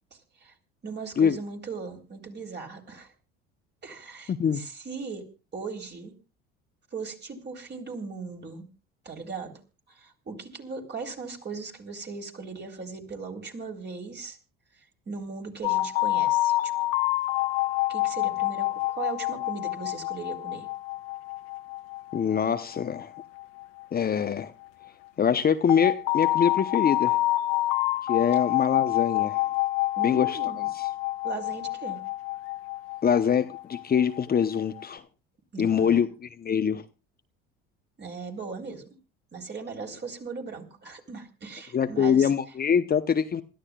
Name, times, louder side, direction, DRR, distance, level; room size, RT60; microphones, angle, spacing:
voice 1, 0.1-0.5 0.8-3.1 3.8-5.2 5.5-6.1 6.9-8.7 9.1-9.5 9.9-14.4 15.1-16.7 17.9-20.7 30.0-30.7 31.2-32.0 35.5-36.0 38.0-38.8 39.3-42.3, right 4 dB, 35° right, 3.8 m, -38 dB
voice 2, 4.3-4.6 22.1-23.1 23.9-24.5 25.2-27.2 28.1-29.4 30.0-30.9 33.0-35.0 35.6-36.8 41.7-43.4, left 7 dB, 30° left, 0.9 m, -24 dB
sound 1, 15.6-24.4 25.7-34.8, left 18 dB, 85° left, 1.2 m, -28 dB
27.0 x 13.0 x 2.4 m
hypercardioid pair, 70°, 30 cm